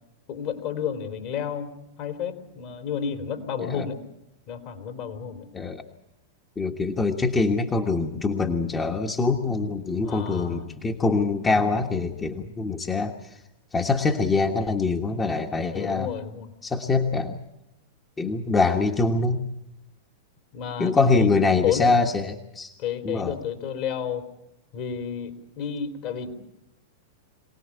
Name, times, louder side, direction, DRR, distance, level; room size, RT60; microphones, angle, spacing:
voice 1, 0.3-1.7 2.0-4.0 4.5-5.5 10.0-10.6 15.7-16.5 20.5-21.3 21.6-21.9 22.8-24.2 24.7-26.3, left 8 dB, 50° left, 6 dB, 3.3 m, -31 dB
voice 2, 6.6-13.1 13.7-16.1 16.6-17.4 18.2-19.4 20.8-22.7 23.0-23.4, left 3 dB, 20° left, 3 dB, 1.4 m, -24 dB
24.5 x 18.0 x 8.5 m, 0.86 s
hypercardioid pair, 100°, 0 cm